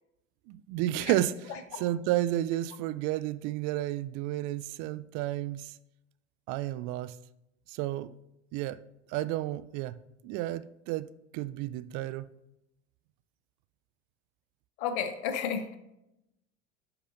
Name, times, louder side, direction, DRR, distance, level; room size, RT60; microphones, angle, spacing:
voice 1, 0.5-1.3 1.8-5.7 6.5-7.1 7.7-8.1 8.5-8.8 9.1-10.0 10.2-11.1 11.3-12.3, right 14 dB, 55° right, 0.4 m, -31 dB
voice 2, 1.5-1.8 14.8-15.8, left 7 dB, 65° left, 1.0 m, -33 dB
11.5 x 4.9 x 2.6 m
hypercardioid pair, 80°, 37 cm